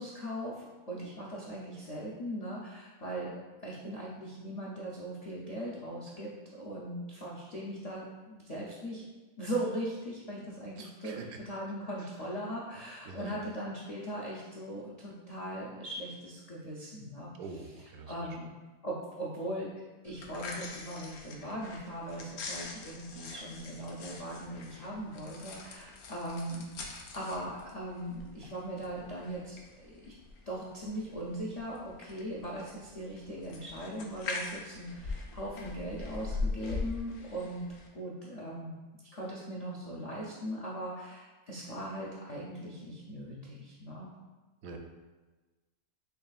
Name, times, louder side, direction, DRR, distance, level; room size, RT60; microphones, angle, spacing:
voice 1, 0.0-3.3 3.6-9.0 9.4-17.3 18.0-18.5 18.8-19.7 20.0-26.7 27.1-30.1 30.5-37.6 37.9-38.8 39.1-44.1, right 1 dB, 70° left, -6 dB, 0.3 m, -39 dB
voice 2, 10.8-11.4 12.0-12.1 13.1-13.4 17.4-18.3 44.6-44.8, right 4 dB, 80° right, 3 dB, 1.0 m, -45 dB
sound 1, 20.0-37.9, left 3 dB, 90° left, 1.1 m, -42 dB
6.6 x 2.3 x 2.3 m, 1.2 s
omnidirectional pair, 1.5 m